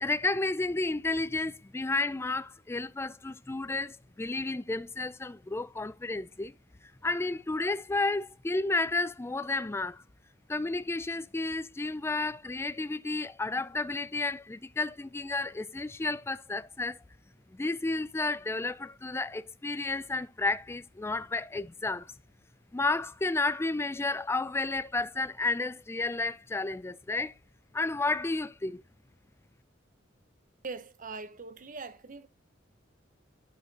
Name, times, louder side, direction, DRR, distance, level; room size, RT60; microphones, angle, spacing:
voice 1, 0.0-6.5 7.0-10.0 10.5-17.0 17.5-22.1 22.7-27.3 27.7-28.8, left 3 dB, 15° left, 0.4 m, -32 dB
voice 2, 30.6-32.3, right 4 dB, 45° right, 0.8 m, -41 dB
12.0 x 4.6 x 2.8 m
head